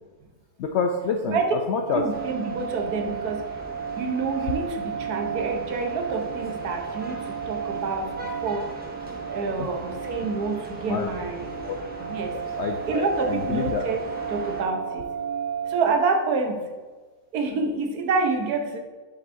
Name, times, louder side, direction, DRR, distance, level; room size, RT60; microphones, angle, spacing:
voice 1, 0.6-2.0 9.6-9.7 10.9-11.2 11.6-11.8 12.6-13.8, left 5 dB, 75° left, 3 dB, 0.6 m, -27 dB
sound 1, 1.8-16.0, right 7 dB, 40° right, 0.7 m, -33 dB
voice 2, 1.9-3.4 3.9-8.7 9.3-11.6 12.0-12.4 12.9-14.0 14.3-15.1 15.6-16.6 17.3-18.8, right 4 dB, 75° right, 4 dB, 1.4 m, -27 dB
sound 2, 2.1-14.6, equal, 5° right, 0.9 m, -41 dB
7.4 x 7.2 x 2.6 m, 1.3 s
omnidirectional pair, 1.7 m